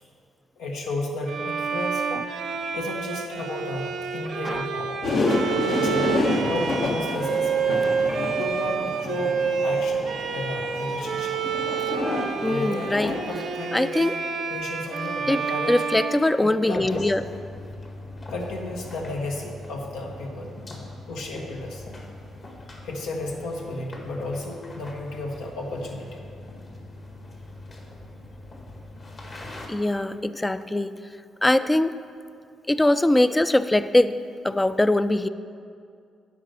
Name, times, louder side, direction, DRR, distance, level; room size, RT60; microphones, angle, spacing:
voice 1, 0.6-2.1 2.7-4.9 5.7-7.5 8.4-11.3 11.9-12.0 12.4-14.0 14.5-15.8 16.4-17.1 18.3-20.5 21.1-21.8 22.8-26.2, left 2 dB, 85° left, 0 dB, 1.3 m, -33 dB
Bowed string instrument, 1.3-17.0, right 6 dB, 70° right, 0.7 m, -29 dB
sound 1, 5.0-13.2, left 2 dB, 65° left, 1.3 m, -28 dB
voice 2, 12.4-13.2 13.7-14.1 15.3-15.4 15.7-17.2 29.7-30.9 31.4-32.0 32.7-34.2 34.4-35.3, left 1 dB, 15° left, 13 dB, 0.4 m, -22 dB
sound 2, 16.8-29.7, left 2 dB, 45° left, 1.8 m, -42 dB
8.7 x 5.2 x 6.7 m, 2.3 s
supercardioid pair, 65°, 0 cm